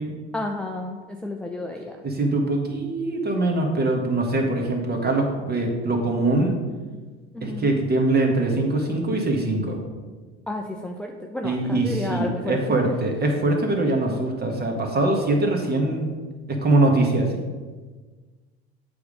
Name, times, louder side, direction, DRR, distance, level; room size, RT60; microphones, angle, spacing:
voice 1, 0.3-2.0 7.3-7.7 10.5-12.9, left 1 dB, 5° left, 1 dB, 0.5 m, -31 dB
voice 2, 2.0-6.6 7.4-9.8 11.4-16.1 16.5-17.3, right 2 dB, 30° right, 2 dB, 1.6 m, -23 dB
7.8 x 3.6 x 5.2 m, 1.4 s
hypercardioid pair, 70°, 32 cm